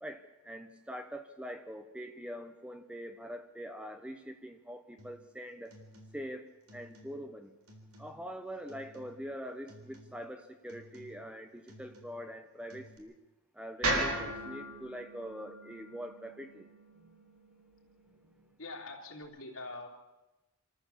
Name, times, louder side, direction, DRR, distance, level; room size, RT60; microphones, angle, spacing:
voice 1, 0.0-5.7 6.1-7.5 8.0-13.2 13.5-16.7 17.0-17.1 18.4-18.5, equal, 5° right, 7 dB, 0.8 m, -44 dB
sound 1, 5.0-5.3 5.7-6.4 6.7-7.4 7.7-8.3 8.7-9.4 9.7-10.3 10.7-11.4 11.7-12.4 12.7-13.0, equal, 90° right, 3.6 m, -56 dB
sound 2, 13.8-18.0, right 2 dB, 70° right, 6.2 m, -37 dB
voice 2, 18.6-19.9, left 2 dB, 70° left, 0 dB, 3.3 m, -44 dB
26.5 x 13.5 x 7.3 m, 1.1 s
head